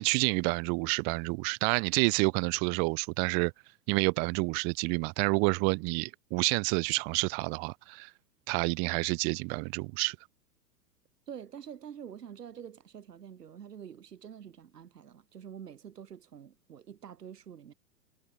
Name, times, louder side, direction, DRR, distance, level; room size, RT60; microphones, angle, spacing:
voice 1, 0.0-3.5 3.9-8.1 8.5-10.2, right 39 dB, 20° right, 0.4 m, -29 dB
voice 2, 11.3-17.7, right 8 dB, 80° right, 5.1 m, -46 dB
hypercardioid pair, 115°, 47 cm